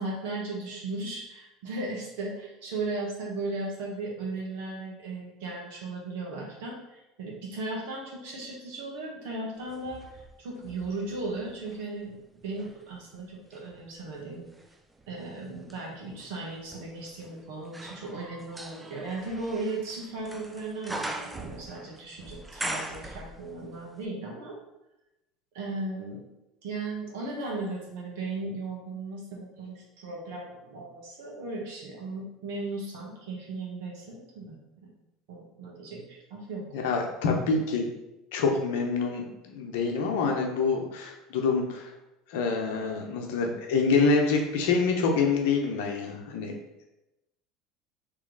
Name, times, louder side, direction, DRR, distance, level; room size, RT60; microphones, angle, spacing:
voice 1, 0.0-10.0 10.4-14.4 15.1-24.6 25.5-26.2 26.6-34.6 35.3-36.6, right 2 dB, 75° right, -2 dB, 1.3 m, -36 dB
sound 1, 9.7-11.9 12.4-23.8 24.0-24.1, right 1 dB, 10° right, 0.5 m, -42 dB
voice 2, 36.7-37.8 38.3-41.9 42.3-46.5, left 4 dB, 75° left, 2 dB, 0.8 m, -26 dB
3.2 x 3.0 x 3.9 m, 0.94 s
hypercardioid pair, 85°, 0 cm